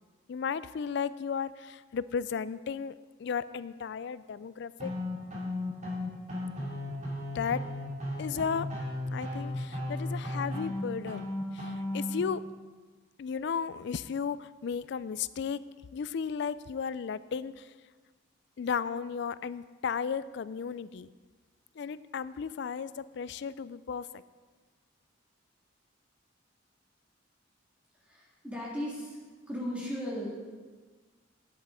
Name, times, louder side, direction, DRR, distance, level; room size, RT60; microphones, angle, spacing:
voice 1, 0.3-2.9 3.2-4.9 7.3-7.6 8.2-8.7 9.1-11.3 11.5-12.4 13.2-15.6 15.9-17.7 18.6-21.1 21.8-24.2, left 6 dB, 55° left, 16 dB, 0.3 m, -34 dB
sound 1, 4.8-12.2, left 1 dB, 35° right, 2.4 m, -35 dB
voice 2, 28.0-29.2 29.5-30.4, equal, 5° right, -5 dB, 1.8 m, -36 dB
10.5 x 8.2 x 4.9 m, 1.4 s
head